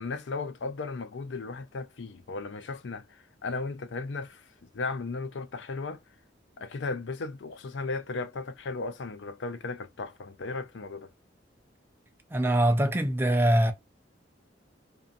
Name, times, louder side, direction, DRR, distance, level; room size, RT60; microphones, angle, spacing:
voice 1, 0.0-4.5 4.7-6.0 6.6-11.1, left 3 dB, 65° left, 0.5 m, -36 dB
voice 2, 12.3-13.7, right 1 dB, 10° right, 0.4 m, -23 dB
2.6 x 2.3 x 2.5 m
head